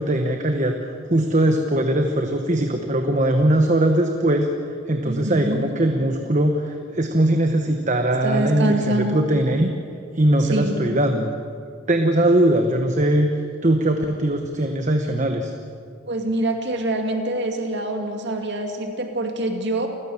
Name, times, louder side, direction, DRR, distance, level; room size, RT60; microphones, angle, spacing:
voice 1, 0.0-4.5 4.9-9.7 10.1-11.3 11.9-13.3 13.6-15.5, right 1 dB, 35° right, 4 dB, 1.2 m, -20 dB
voice 2, 5.0-5.6 8.2-9.2 10.4-10.8 16.1-19.9, right 1 dB, 55° right, 4 dB, 2.3 m, -25 dB
29.0 x 16.0 x 7.2 m, 2.5 s
head